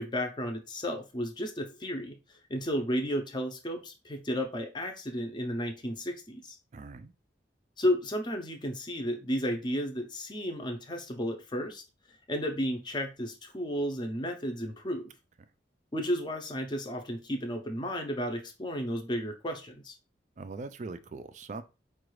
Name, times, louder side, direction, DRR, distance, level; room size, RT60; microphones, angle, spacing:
voice 1, 0.0-2.2 2.5-6.6 7.8-11.8 12.3-15.1 15.9-20.0, equal, 25° left, 0.5 m, -33 dB
voice 2, 6.7-7.1 20.4-21.6, right 3 dB, 40° right, 0.3 m, -41 dB
4.8 x 2.3 x 3.1 m
head